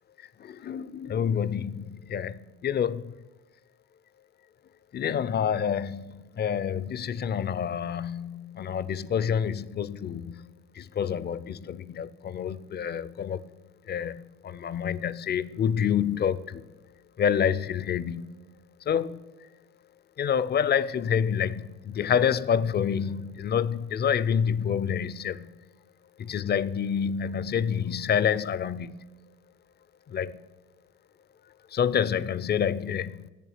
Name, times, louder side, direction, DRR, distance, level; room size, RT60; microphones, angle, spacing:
voice 1, 0.4-3.1 4.9-10.4 10.8-13.4 13.9-16.6 17.2-18.3 18.9-19.2 20.2-25.5 26.2-29.0 30.1-30.4 31.7-33.3, left 8 dB, 35° left, 18 dB, 0.4 m, -28 dB
8.1 x 7.1 x 7.5 m, 1.2 s
cardioid pair, 90°, 30 cm